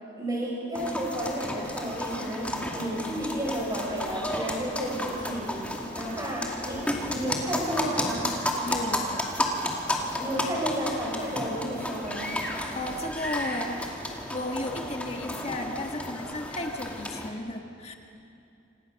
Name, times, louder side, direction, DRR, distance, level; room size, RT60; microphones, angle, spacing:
voice 1, 0.1-6.8 7.1-8.3 10.2-12.3, equal, 20° right, -3 dB, 7.0 m, -32 dB
sound 1, 0.7-17.3, left 1 dB, 5° left, 2.4 m, -32 dB
voice 2, 8.7-9.2 12.7-13.8 14.3-18.0, left 1 dB, 35° left, 3 dB, 1.7 m, -34 dB
28.0 x 25.5 x 6.5 m, 2.7 s
head